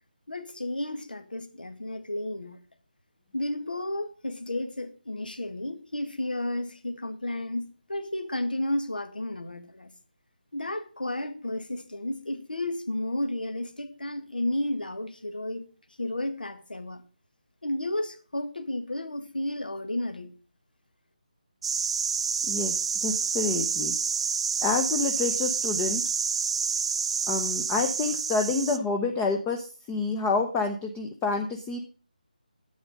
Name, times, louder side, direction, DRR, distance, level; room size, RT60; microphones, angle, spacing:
voice 1, 0.3-2.6 3.3-9.9 10.5-15.6 16.0-17.0 17.6-20.3, left 1 dB, 80° left, 1.7 m, -32 dB
sound 1, 21.6-28.8, right 6 dB, 40° right, 0.6 m, -28 dB
voice 2, 22.5-23.9 24.6-26.0 27.3-31.8, left 4 dB, 10° left, 0.7 m, -28 dB
10.5 x 7.9 x 5.2 m
figure-of-eight pair, 160°, 5 cm